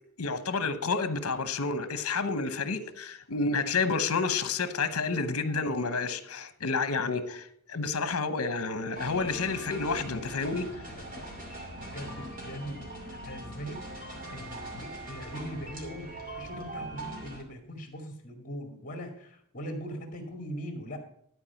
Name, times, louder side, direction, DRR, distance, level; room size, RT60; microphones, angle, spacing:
voice 1, 0.2-10.7 14.7-14.8, left 4 dB, 70° left, 0.9 m, -30 dB
sound 1, 8.9-17.4, right 1 dB, 40° right, 2.6 m, -41 dB
voice 2, 10.9-11.3 11.8-12.8 13.1-13.9 14.3-21.0, equal, 40° left, 2.2 m, -41 dB
12.0 x 4.7 x 7.0 m
head